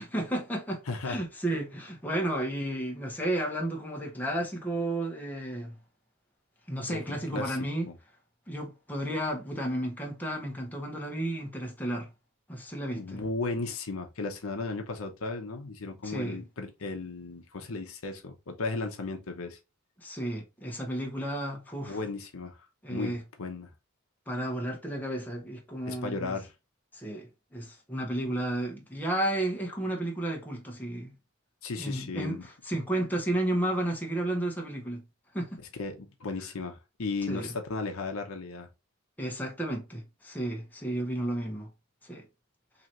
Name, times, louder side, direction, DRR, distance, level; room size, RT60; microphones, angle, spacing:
voice 1, 0.0-5.7 6.7-7.9 8.5-12.1 12.5-13.2 16.0-16.4 20.0-22.0 22.8-23.2 24.3-26.4 26.9-31.1 31.8-35.0 35.3-35.6 37.3-37.5 39.2-41.7 42.0-42.3, right 1 dB, 10° left, 1.1 m, -32 dB
voice 2, 0.9-1.2 6.9-7.6 7.9-8.0 13.0-19.6 21.9-22.6 22.9-23.7 25.9-26.5 31.6-32.4 35.8-38.7, left 3 dB, 75° left, 0.8 m, -35 dB
3.9 x 2.9 x 2.9 m
head